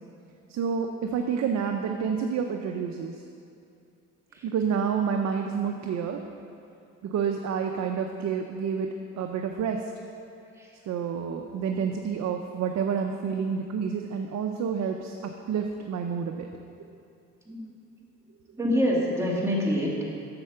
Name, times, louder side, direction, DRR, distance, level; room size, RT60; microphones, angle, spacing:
voice 1, 0.5-3.2 4.4-6.2 7.0-9.9 10.9-16.5, right 6 dB, 65° right, 4 dB, 0.7 m, -29 dB
voice 2, 18.6-20.1, equal, 10° right, -4 dB, 2.2 m, -25 dB
8.0 x 6.6 x 6.7 m, 2.5 s
cardioid pair, 90°, 30 cm